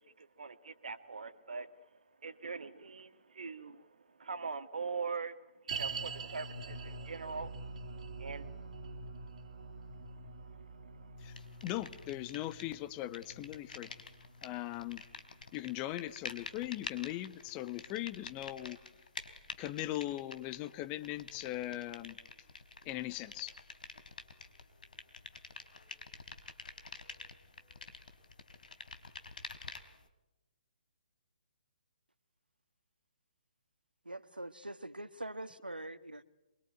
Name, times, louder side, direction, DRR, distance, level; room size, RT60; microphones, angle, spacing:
voice 1, 0.0-1.7 2.2-3.9 4.2-5.4 5.6-7.5 8.2-8.5 10.5-10.6, right 5 dB, 60° right, 10 dB, 1.8 m, -42 dB
sound 1, 5.7-17.0 17.2-17.3 18.0-18.1, right 4 dB, 45° right, 2.8 m, -46 dB
sound 2, 11.4-12.8 13.0-30.0, left 4 dB, 65° left, 3.7 m, -49 dB
voice 2, 11.6-13.9 14.4-15.0 15.5-18.8 19.6-22.2 22.8-23.5, left 15 dB, 20° left, 13 dB, 1.3 m, -39 dB
voice 3, 34.0-36.2, right 1 dB, 85° right, 12 dB, 1.7 m, -43 dB
27.0 x 23.5 x 9.4 m, 0.99 s
figure-of-eight pair, 135°, 5 cm